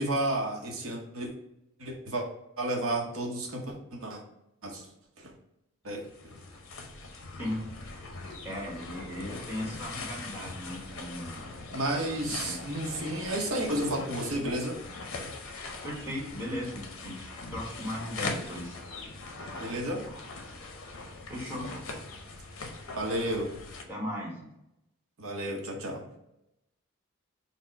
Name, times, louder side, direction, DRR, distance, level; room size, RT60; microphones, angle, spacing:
voice 1, 0.0-1.3 1.8-2.3 2.6-4.2 4.6-4.9 5.2-5.3 5.8-6.3 11.7-14.8 19.6-20.0 22.9-23.5 25.2-26.0, right 1 dB, 85° right, 0 dB, 0.8 m, -32 dB
sound 1, 5.9-23.8, left 3 dB, 85° left, 0.7 m, -41 dB
voice 2, 8.4-11.6 12.3-12.6 15.8-18.8 21.3-21.7 23.9-24.5, equal, 10° right, -4 dB, 1.1 m, -37 dB
4.2 x 2.1 x 4.5 m, 0.85 s
head